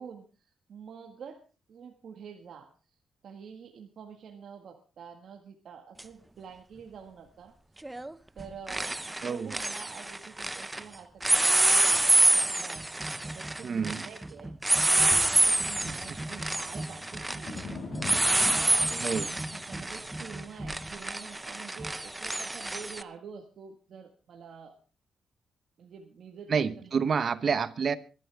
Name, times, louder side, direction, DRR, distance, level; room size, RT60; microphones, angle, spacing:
voice 1, 0.0-1.4 1.7-2.7 3.2-7.5 8.4-17.6 18.1-24.8 25.8-26.9 27.2-27.3, right 6 dB, 60° right, 1.7 m, -47 dB
sound 1, 6.0-6.1 7.8-8.1 8.4-10.8 11.2-23.0, right 2 dB, 10° right, 0.6 m, -27 dB
voice 2, 9.2-9.5 13.6-14.0 15.8-16.0 19.0-19.3 26.5-28.0, right 6 dB, 45° right, 0.9 m, -28 dB
sound 2, 15.0-20.9, left 3 dB, 45° left, 6.6 m, -43 dB
23.5 x 12.0 x 3.5 m
cardioid pair, 120°, 0 cm